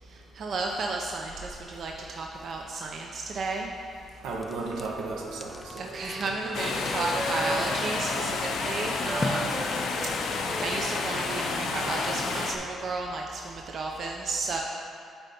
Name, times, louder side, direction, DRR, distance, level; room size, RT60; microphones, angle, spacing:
voice 1, 0.0-3.7 5.8-9.6 10.1-14.6, right 3 dB, 55° right, 0 dB, 0.5 m, -33 dB
voice 2, 4.2-6.0, right 3 dB, 85° right, 0 dB, 0.9 m, -34 dB
sound 1, 4.3-10.9, left 3 dB, 25° left, 0.4 m, -41 dB
Wind instrument woodwind instrument, 5.0-12.3, right 1 dB, 15° right, 0.6 m, -38 dB
sound 2, 6.5-12.6, left 4 dB, 75° left, 0.6 m, -30 dB
8.7 x 4.2 x 4.3 m, 2.3 s
cardioid pair, 90°, 0 cm